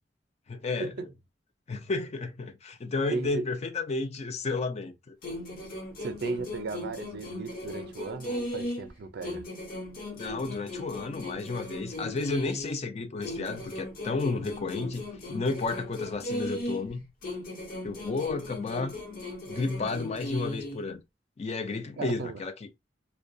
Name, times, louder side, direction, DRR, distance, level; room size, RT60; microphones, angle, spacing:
voice 1, 0.5-0.9 1.7-5.2 10.1-15.0 15.3-17.1 17.8-19.0 19.5-21.0 21.4-22.7, left 3 dB, 35° left, 0.4 m, -32 dB
voice 2, 3.1-3.4 6.0-9.4 22.0-22.4, right 4 dB, 60° right, 0.4 m, -35 dB
sound 1, 5.2-8.9 9.2-12.8 13.2-16.9 17.2-20.8, left 1 dB, 50° left, 0.8 m, -37 dB
2.3 x 2.1 x 2.5 m
head